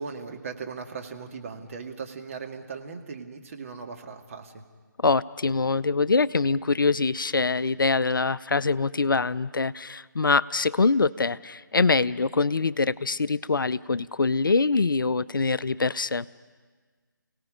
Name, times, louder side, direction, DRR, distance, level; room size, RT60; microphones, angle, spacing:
voice 1, 0.0-4.6, right 5 dB, 40° right, 3 dB, 1.9 m, -38 dB
voice 2, 5.0-16.3, left 4 dB, 75° left, 17 dB, 0.5 m, -24 dB
29.5 x 18.0 x 5.0 m, 1.5 s
figure-of-eight pair, 155°, 11 cm